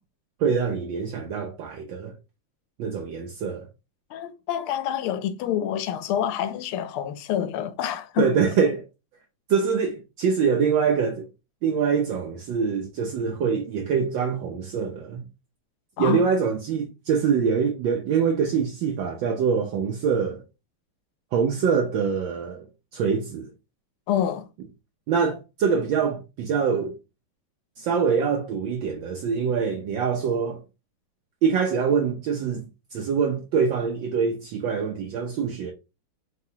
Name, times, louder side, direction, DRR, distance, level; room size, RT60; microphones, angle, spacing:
voice 1, 0.4-2.1 2.8-3.7 8.2-8.9 9.5-11.3 11.6-15.2 16.0-20.4 21.3-22.7 22.9-23.5 25.1-26.9 27.8-30.6 31.4-35.7, right 6 dB, 75° right, 1.2 m, -24 dB
voice 2, 4.1-8.3 16.0-16.2 24.1-24.5, left 10 dB, 80° left, 1.4 m, -27 dB
4.1 x 3.7 x 2.7 m
omnidirectional pair, 2.4 m